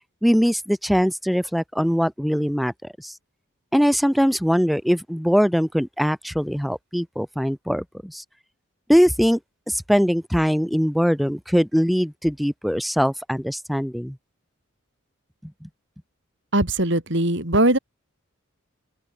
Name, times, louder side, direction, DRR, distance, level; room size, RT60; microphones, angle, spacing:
voice 1, 0.2-2.7 3.0-3.1 3.7-8.2 8.9-9.4 9.7-14.2 15.4-15.7, equal, ahead, 1.4 m, -21 dB
voice 2, 16.5-17.8, right 1 dB, 55° right, 4.8 m, -20 dB
open air
head